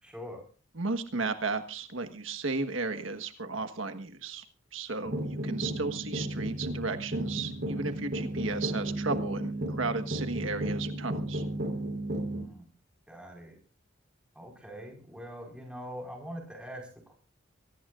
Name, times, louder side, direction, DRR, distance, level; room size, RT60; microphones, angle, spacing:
voice 1, 0.0-0.4 12.3-12.7 13.1-13.5 14.3-16.9, equal, 5° right, 0 dB, 5.0 m, -43 dB
voice 2, 0.8-4.4 4.7-11.4, right 3 dB, 80° right, 7 dB, 1.5 m, -34 dB
sound 1, 5.0-12.4, right 1 dB, 55° right, 4.2 m, -34 dB
24.0 x 18.0 x 2.5 m, 0.36 s
head